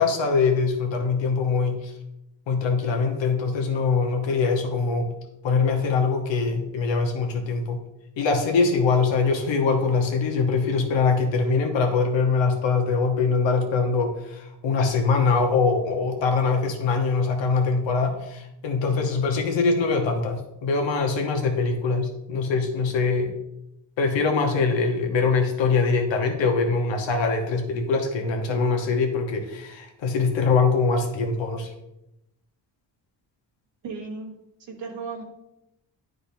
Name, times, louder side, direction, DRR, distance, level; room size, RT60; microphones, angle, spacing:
voice 1, 0.0-1.9 2.5-5.1 5.4-7.8 8.2-23.3 24.0-31.7, left 4 dB, 85° left, 3 dB, 1.2 m, -23 dB
voice 2, 33.8-34.3 34.7-35.2, right 4 dB, 75° right, -1 dB, 1.5 m, -35 dB
10.0 x 3.9 x 2.7 m, 0.86 s
cardioid pair, 80°, 44 cm